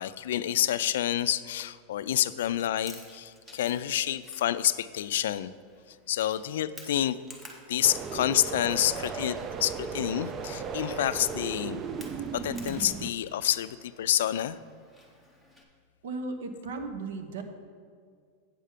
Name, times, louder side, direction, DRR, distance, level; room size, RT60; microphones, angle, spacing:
voice 1, 0.0-5.5 6.1-7.2 7.7-11.8 12.3-14.6, left 11 dB, 80° left, 14 dB, 0.3 m, -28 dB
Chewing mastication, 2.5-15.6, left 1 dB, 5° right, 0.7 m, -54 dB
sound 1, 7.8-13.1, right 6 dB, 20° right, 0.3 m, -36 dB
voice 2, 16.0-17.4, right 3 dB, 85° right, 6 dB, 1.0 m, -36 dB
8.1 x 6.7 x 5.0 m, 2.1 s
supercardioid pair, 175°, 0 cm